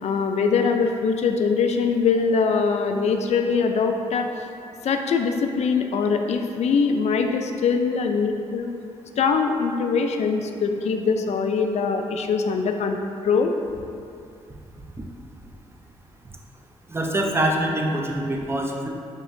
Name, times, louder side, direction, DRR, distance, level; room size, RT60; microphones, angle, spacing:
voice 1, 0.0-4.3 4.8-8.7 9.2-13.5, left 5 dB, 60° left, 5 dB, 0.4 m, -22 dB
voice 2, 16.9-18.9, right 1 dB, 20° right, 0 dB, 0.6 m, -24 dB
5.1 x 2.7 x 2.6 m, 2.4 s
supercardioid pair, 50°, 13 cm